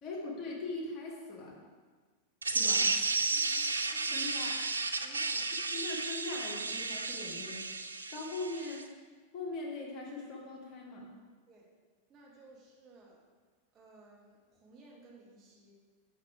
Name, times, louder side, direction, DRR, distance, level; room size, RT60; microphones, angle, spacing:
voice 1, 0.0-1.5 2.5-2.9 4.1-4.7 5.7-7.6 8.1-8.9 9.3-11.0, left 2 dB, 35° left, -3 dB, 1.8 m, -40 dB
sound 1, 2.4-8.8, right 3 dB, 80° right, 0.4 m, -33 dB
voice 2, 3.3-4.2 5.0-5.7 11.5-11.7 12.1-13.2 13.7-15.7, right 2 dB, 30° right, -2 dB, 1.4 m, -57 dB
6.1 x 5.8 x 4.7 m, 1.4 s
figure-of-eight pair, 90°, 0 cm